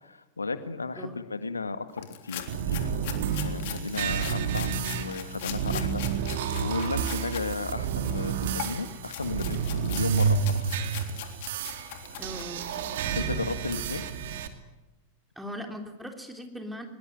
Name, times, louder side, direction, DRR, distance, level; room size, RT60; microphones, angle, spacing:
voice 1, 0.0-2.9 3.4-6.0 6.6-10.7 13.2-14.1, left 3 dB, 80° left, 11 dB, 1.8 m, -34 dB
sound 1, 2.0-7.5 7.8-12.8, left 11 dB, 50° left, 3.6 m, -41 dB
sound 2, 2.5-14.5, right 7 dB, 55° right, 2.6 m, -30 dB
voice 2, 5.4-5.8 12.2-13.2 15.3-16.9, equal, 5° right, 4 dB, 3.3 m, -40 dB
24.0 x 22.0 x 9.3 m, 1.1 s
figure-of-eight pair, 90°, 0 cm